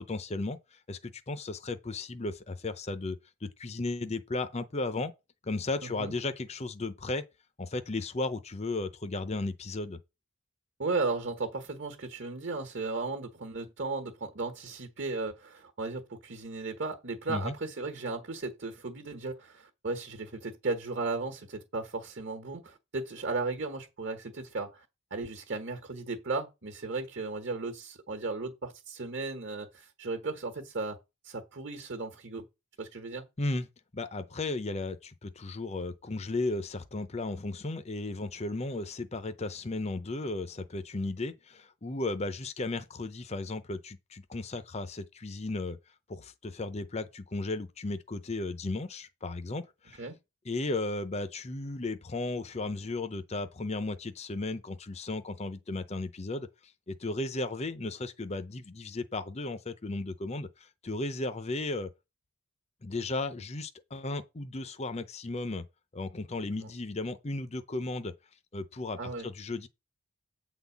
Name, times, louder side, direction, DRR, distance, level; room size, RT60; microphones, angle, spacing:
voice 1, 0.0-5.1 5.4-7.2 7.6-10.0 17.3-17.5 33.4-33.7 33.9-45.8 46.1-50.0 50.4-56.5 57.0-61.9 62.8-65.6 65.9-68.1 68.5-69.7, left 2 dB, 30° left, 0.6 m, -35 dB
voice 2, 5.8-6.1 10.8-24.8 25.1-31.0 31.2-32.5 32.8-33.2 50.0-50.2 66.6-66.7 69.0-69.3, right 3 dB, 50° right, 1.3 m, -35 dB
8.8 x 3.9 x 7.1 m
head